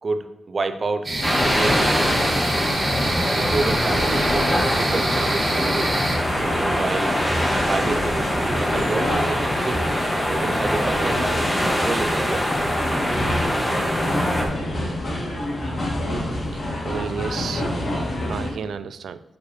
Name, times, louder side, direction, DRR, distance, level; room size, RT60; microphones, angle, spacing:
voice 1, 0.0-2.2 3.3-5.9 6.5-7.2 7.7-9.8 10.3-11.2 11.8-12.7, right 3 dB, 40° right, 8 dB, 0.6 m, -29 dB
sound 1, 1.0-6.2, right 1 dB, 20° right, 1.5 m, -26 dB
sound 2, 1.1-18.5, left 1 dB, 55° left, 2.5 m, -28 dB
sound 3, 1.2-14.4, equal, 15° left, 1.3 m, -24 dB
voice 2, 16.5-17.7 18.3-19.2, right 7 dB, 90° right, 13 dB, 0.3 m, -32 dB
6.9 x 6.6 x 3.2 m, 1.0 s
wide cardioid pair, 145°, 0 cm